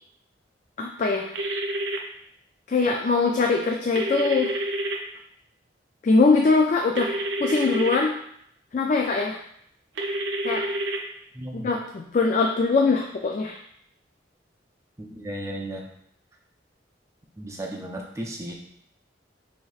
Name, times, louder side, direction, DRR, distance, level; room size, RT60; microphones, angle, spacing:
voice 1, 0.8-1.3 2.7-4.5 6.0-7.1 7.4-8.1 8.7-9.4 10.4-10.6 11.6-13.6, left 4 dB, 45° left, 1 dB, 0.3 m, -22 dB
sound 1, 1.3-2.0 3.9-5.0 7.0-8.0 10.0-11.0, right 1 dB, 90° right, 0.6 m, -28 dB
voice 2, 11.3-11.7 15.0-15.9 17.4-18.5, right 1 dB, 15° right, 0 dB, 0.5 m, -35 dB
6.2 x 2.7 x 2.4 m, 0.71 s
head